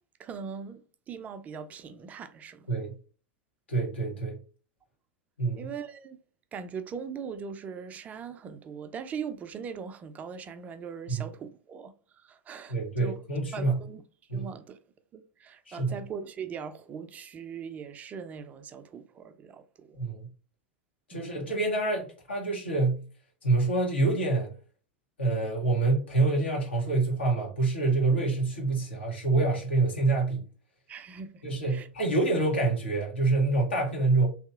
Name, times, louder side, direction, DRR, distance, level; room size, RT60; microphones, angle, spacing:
voice 1, 0.2-0.8 1.1-2.7 5.6-6.2 6.5-13.1 13.5-14.0 14.3-14.8 15.1-20.0 21.1-21.5 30.9-31.9, right 6 dB, 25° right, 0.3 m, -40 dB
voice 2, 3.7-4.4 5.4-5.6 11.1-11.2 12.7-13.8 14.3-14.5 15.7-16.0 19.9-20.3 21.1-23.0 23.4-24.5 25.2-30.4 31.4-34.3, right 3 dB, 80° left, 1.2 m, -26 dB
2.9 x 2.8 x 2.3 m
figure-of-eight pair, 90°, 6 cm